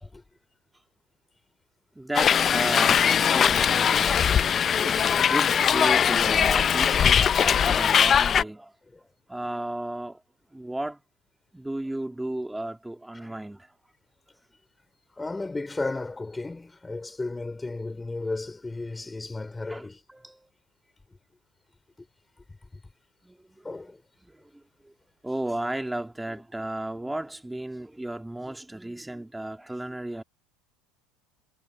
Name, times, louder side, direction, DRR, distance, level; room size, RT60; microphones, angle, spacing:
voice 1, 1.9-8.7 9.3-10.2 10.5-11.0 11.5-13.7 19.7-20.5 23.2-23.9 24.2-24.9 25.2-30.2, right 1 dB, 5° right, 2.2 m, -34 dB
Hiss, 2.1-8.4, left 8 dB, 35° left, 0.7 m, -21 dB
voice 2, 15.1-20.0 22.0-22.1 23.6-24.0 26.3-26.4, left 3 dB, 15° left, 4.9 m, -34 dB
hypercardioid pair, 90°, 0 cm